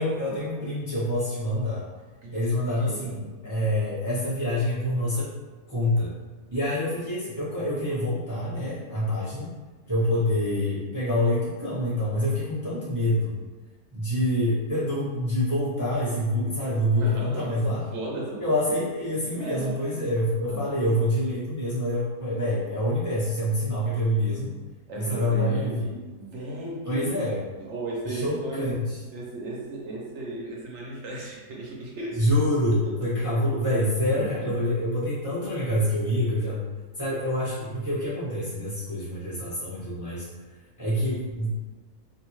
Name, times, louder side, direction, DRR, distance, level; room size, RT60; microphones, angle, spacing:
voice 1, 0.0-1.8 2.3-5.3 5.7-6.1 6.5-9.5 9.9-13.4 13.9-17.8 18.4-24.5 25.0-26.0 26.8-27.4 28.1-28.8 32.1-36.6 37.0-40.2 40.8-41.6, left 1 dB, 20° right, -10 dB, 0.5 m, -26 dB
voice 2, 2.7-3.1 10.1-10.2 16.9-18.5 19.4-20.0 20.5-20.7 24.9-25.8 26.2-27.1 27.6-32.3, right 2 dB, 65° right, -2 dB, 0.7 m, -36 dB
2.6 x 2.2 x 3.0 m, 1.3 s
omnidirectional pair, 1.7 m